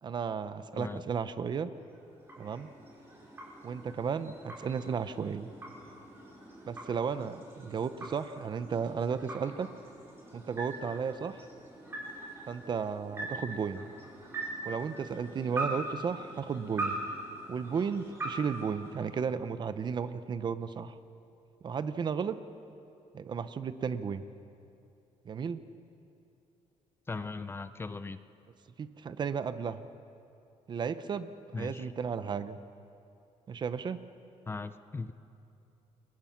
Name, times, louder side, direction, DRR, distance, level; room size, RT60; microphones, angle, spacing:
voice 1, 0.0-1.7 2.4-2.7 3.6-5.5 6.7-9.7 10.3-11.4 12.5-13.9 14.7-17.0 17.5-21.0 21.6-22.4 23.1-24.2 25.2-25.6 28.8-29.9 30.7-31.3 31.5-32.6 33.5-34.0, right 6 dB, 35° right, 12 dB, 0.8 m, -34 dB
sound 1, 1.7-19.5, right 2 dB, 20° right, 5.1 m, -42 dB
voice 2, 27.1-28.2 31.5-31.9 34.5-35.1, left 4 dB, 20° left, 11 dB, 0.6 m, -38 dB
28.5 x 22.5 x 5.9 m, 2.7 s
cardioid pair, 155°, 13 cm